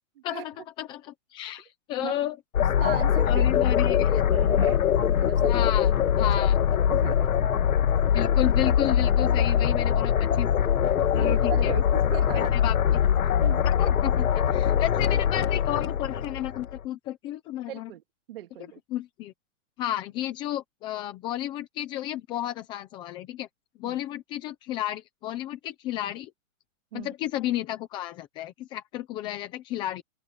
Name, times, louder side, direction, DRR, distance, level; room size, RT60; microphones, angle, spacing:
voice 1, 0.2-1.0 1.3-2.4 3.3-4.2 5.5-5.9 6.2-6.6 8.1-10.5 11.1-11.7 12.3-12.7 13.6-17.9 18.9-19.3 19.8-23.5 23.8-26.3 26.9-30.0, left 13 dB, 10° left, 0.8 m, -32 dB
sound 1, 2.5-16.8, left 9 dB, 85° left, 2.5 m, -23 dB
voice 2, 2.8-3.5 3.9-4.0 4.3-4.8 5.2-6.2 6.7-7.8 8.1-8.3 11.2-12.6 13.4-13.6 17.7-18.8 23.8-24.0 26.9-27.1, right 13 dB, 45° right, 2.4 m, -38 dB
open air
hypercardioid pair, 170°, 41 cm